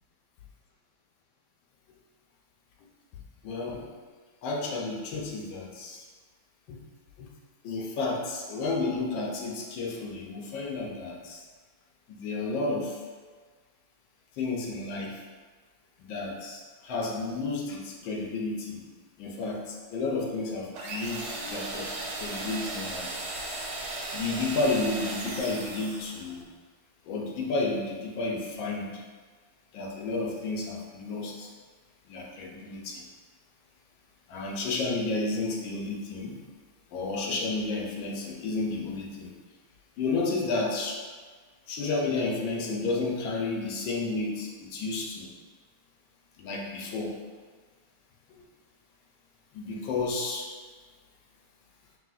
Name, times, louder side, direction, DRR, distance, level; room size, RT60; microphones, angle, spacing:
voice 1, 3.4-3.8 4.4-6.0 6.7-6.8 7.2-7.3 7.6-11.4 12.2-13.0 14.4-15.2 16.0-18.9 19.2-23.1 24.1-26.4 27.1-29.0 29.7-31.5 32.1-33.0 34.3-36.4 36.9-39.3 40.0-41.0 41.7-45.3 46.4-47.2 49.5-50.5, left 3 dB, 75° left, -1 dB, 1.3 m, -31 dB
sound 1, 20.7-26.4, right 2 dB, 75° right, 1.4 m, -36 dB
4.8 x 3.3 x 2.4 m, 1.5 s
omnidirectional pair, 2.3 m